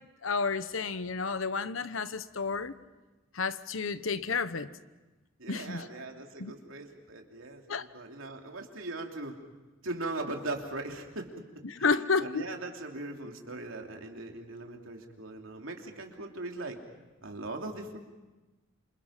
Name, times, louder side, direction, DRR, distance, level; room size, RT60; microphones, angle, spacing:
voice 1, 0.2-2.8 3.3-4.7 5.5-5.9 6.4-6.5 7.7-7.9 11.6-12.5, left 4 dB, 75° left, 1.0 m, -31 dB
voice 2, 5.4-9.4 9.8-11.3 11.8-11.9 12.2-16.8 17.2-18.0, right 2 dB, 85° right, 3.1 m, -39 dB
28.0 x 27.0 x 5.8 m
head